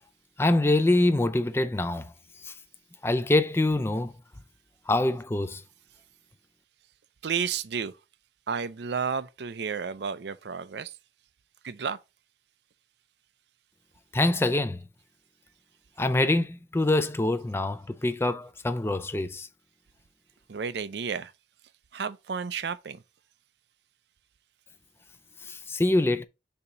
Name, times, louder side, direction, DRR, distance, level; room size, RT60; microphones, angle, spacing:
voice 1, 0.4-2.1 2.4-2.5 3.0-4.1 4.9-5.6 14.1-14.8 16.0-19.5 25.4-26.2, left 2 dB, 15° left, 0.4 m, -25 dB
voice 2, 7.2-7.9 8.5-10.9 11.6-12.0 20.5-21.3 21.9-23.0, right 6 dB, 70° right, 0.5 m, -32 dB
6.8 x 2.9 x 4.9 m
head